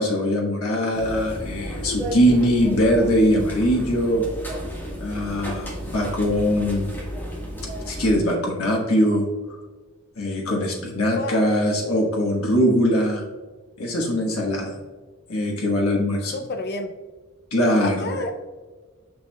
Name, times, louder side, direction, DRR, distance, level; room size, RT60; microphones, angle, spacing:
voice 1, 0.0-4.2 5.0-7.0 7.9-9.3 10.2-13.2 13.8-14.7 15.3-16.3 17.5-18.2, equal, 90° left, -1 dB, 1.2 m, -21 dB
sound 1, 0.9-8.2, equal, 10° left, 1.5 m, -32 dB
voice 2, 16.2-16.9 17.8-18.4, left 2 dB, 50° left, 7 dB, 0.6 m, -30 dB
6.7 x 6.4 x 2.3 m, 1.4 s
head